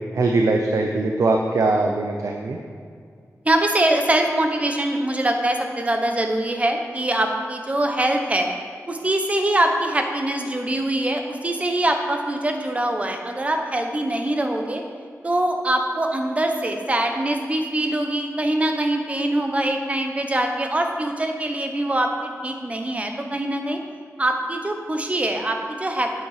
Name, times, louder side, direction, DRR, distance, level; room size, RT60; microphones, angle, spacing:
voice 1, 0.1-2.6, right 3 dB, 70° right, 2 dB, 0.6 m, -21 dB
voice 2, 3.4-8.5 8.9-14.8 15.2-23.8 24.2-26.2, right 1 dB, 25° right, 4 dB, 0.9 m, -23 dB
8.3 x 7.5 x 5.0 m, 2.2 s
wide cardioid pair, 135°, 6 cm